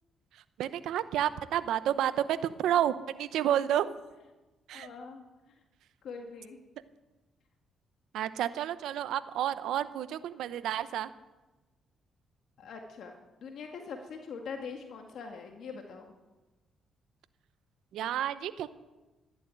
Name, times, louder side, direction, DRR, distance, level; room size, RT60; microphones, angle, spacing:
voice 1, 0.6-3.9 4.7-4.9 8.1-11.1 17.9-18.7, right 11 dB, 80° right, 13 dB, 0.8 m, -30 dB
voice 2, 4.7-5.3 6.0-6.6 12.6-16.1, left 5 dB, 70° left, 3 dB, 1.9 m, -43 dB
13.5 x 11.5 x 9.1 m, 1.1 s
cardioid pair, 90°, 0 cm